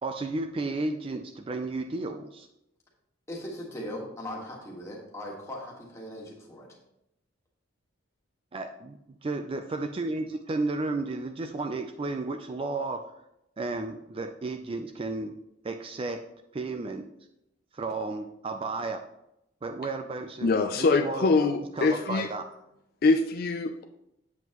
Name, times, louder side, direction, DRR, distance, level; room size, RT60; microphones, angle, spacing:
voice 1, 0.0-2.5 8.5-13.0 13.6-15.3 15.6-16.2 16.5-17.1 17.7-19.0 19.6-21.3 21.7-22.4, right 3 dB, 30° right, 7 dB, 0.3 m, -33 dB
voice 2, 3.3-6.7, left 1 dB, 15° left, -2 dB, 1.6 m, -39 dB
voice 3, 20.4-22.3 23.0-23.8, left 3 dB, 50° left, 6 dB, 0.4 m, -24 dB
7.9 x 7.2 x 3.0 m, 0.85 s
head